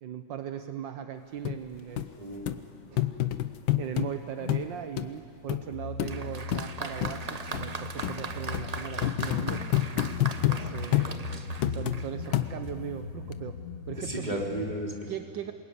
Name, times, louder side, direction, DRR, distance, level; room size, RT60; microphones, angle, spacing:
voice 1, 0.0-2.1 2.9-3.1 3.7-9.6 10.5-11.0 11.7-13.6 13.9-14.4 15.1-15.5, right 9 dB, 75° right, 8 dB, 1.6 m, -38 dB
sound 1, 1.5-1.6 2.0-2.1 2.5-2.6 3.0-4.1 4.5-4.7 5.0-5.1 5.5-5.6 6.0-6.1 6.5-6.7 7.0-7.1 7.5-7.6 8.0-8.2 8.5-8.7 9.0-10.6 10.9-11.1 11.6-12.0 12.3-12.8 13.3-13.4, left 14 dB, 85° left, 1.7 m, -27 dB
sound 2, 1.6-1.8 2.3-3.4 3.8-4.7 5.3-14.9, left 4 dB, 40° left, 1.6 m, -40 dB
voice 2, 2.2-2.5 10.6-11.5 14.0-15.1, right 1 dB, 20° right, -1 dB, 3.8 m, -36 dB
Applause, 6.0-12.5, right 4 dB, 40° right, 0.6 m, -39 dB
27.0 x 21.5 x 9.9 m, 2.3 s
omnidirectional pair, 2.1 m